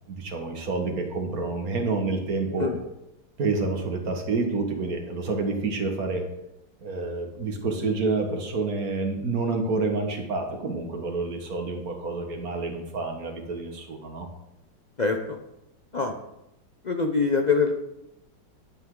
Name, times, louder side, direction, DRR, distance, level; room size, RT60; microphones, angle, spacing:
voice 1, 0.1-2.7 3.4-6.3 6.8-14.3, right 3 dB, 50° right, 4 dB, 1.9 m, -28 dB
voice 2, 15.0-15.4 15.9-16.1 16.8-17.7, left 4 dB, 60° left, 4 dB, 0.4 m, -24 dB
10.5 x 9.0 x 3.8 m, 0.88 s
omnidirectional pair, 2.1 m